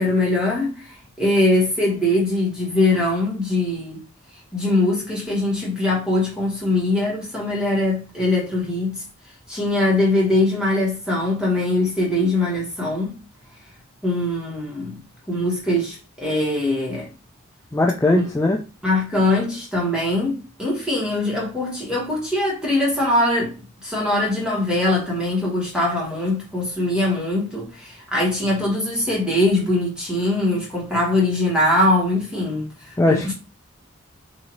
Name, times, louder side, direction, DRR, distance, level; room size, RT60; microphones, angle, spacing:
voice 1, 0.0-4.0 4.5-9.0 9.5-13.2 14.0-15.0 15.3-17.1 18.1-18.3 18.8-23.5 23.8-33.3, left 1 dB, 5° right, 1.4 m, -22 dB
voice 2, 17.7-18.6 33.0-33.3, left 2 dB, 10° left, 0.3 m, -19 dB
4.0 x 2.8 x 2.9 m
head